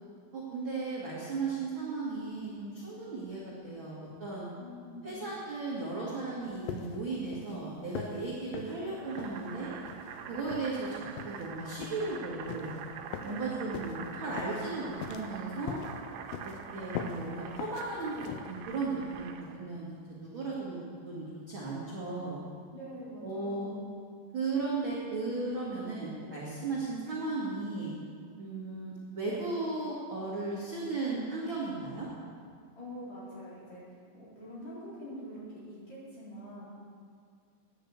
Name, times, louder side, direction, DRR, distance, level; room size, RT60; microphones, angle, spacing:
voice 1, 0.3-4.5 5.0-9.7 10.3-12.7 13.2-15.8 16.4-19.3 19.5-22.4 23.2-23.7 24.3-27.9 28.4-32.1, right 3 dB, 65° right, -7 dB, 1.2 m, -36 dB
voice 2, 4.6-5.2 13.2-13.7 22.7-24.0 32.8-36.7, equal, 40° left, -9 dB, 5.1 m, -45 dB
sound 1, 6.7-7.1 7.3-7.6 7.9-8.2 8.5-8.7 9.2-9.4 9.8-10.1 10.5-10.7 11.2-11.5 11.8-12.0 12.5-12.7 13.1-13.4 13.7-14.0 14.4-14.6 15.0-15.4 15.7-15.9 16.3-16.6 16.9-17.2 17.6-17.9 18.2-18.4, left 8 dB, 85° left, 2.5 m, -40 dB
Boiling, 9.0-19.6, right 6 dB, 85° right, 3.2 m, -45 dB
9.9 x 9.2 x 8.1 m, 2.2 s
omnidirectional pair, 5.2 m